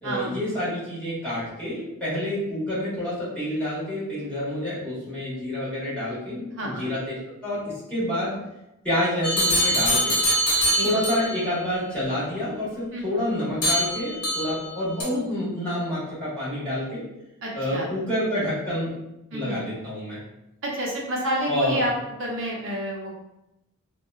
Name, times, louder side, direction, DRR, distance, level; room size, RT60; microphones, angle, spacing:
voice 1, 0.0-7.1 7.4-8.3 8.8-10.1 10.8-17.0 17.5-18.9 19.3-20.2 21.5-21.8, left 1 dB, 5° left, -12 dB, 1.4 m, -28 dB
voice 2, 6.6-6.9 10.7-10.9 12.9-13.0 17.4-17.9 19.3-19.6 20.6-21.9 22.2-23.1, right 1 dB, 60° right, -2 dB, 0.7 m, -29 dB
sound 1, 9.2-11.4 13.6-14.7 15.0-15.1, equal, 85° left, 0.8 m, -23 dB
2.7 x 2.2 x 2.3 m, 0.87 s
head